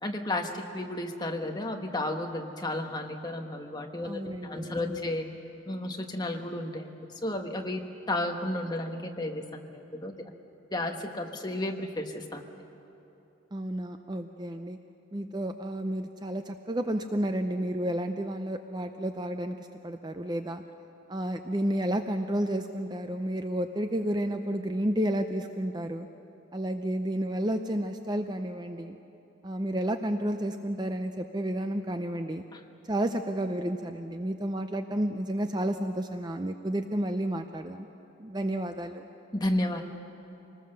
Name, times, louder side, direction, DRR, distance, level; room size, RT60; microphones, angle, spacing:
voice 1, 0.0-5.3 5.7-7.8 8.1-10.3 10.7-12.5 32.5-32.6 39.3-39.8, left 1 dB, 20° left, 3 dB, 1.3 m, -33 dB
voice 2, 4.0-5.1 13.5-14.8 15.1-19.6 19.8-20.6 21.1-26.1 26.5-29.0 29.4-32.4 32.9-37.9 38.2-39.1, right 1 dB, 20° right, 7 dB, 0.5 m, -31 dB
25.0 x 19.5 x 6.7 m, 2.9 s
head